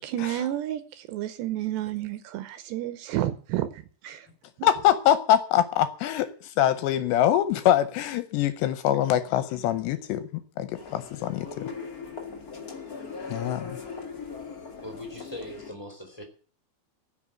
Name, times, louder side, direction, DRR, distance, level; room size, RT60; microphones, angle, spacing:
voice 1, 0.0-4.3 4.6-4.7, right 13 dB, 80° right, 2.8 m, -31 dB
voice 2, 4.6-6.3 6.6-10.3 10.6-11.5 13.3-13.6, left 11 dB, 80° left, 2.8 m, -23 dB
sound 1, 10.7-15.7, left 5 dB, 55° left, 1.0 m, -39 dB
voice 3, 13.3-13.7 14.8-16.2, left 1 dB, 5° left, 2.9 m, -41 dB
15.0 x 6.3 x 8.8 m
omnidirectional pair, 5.3 m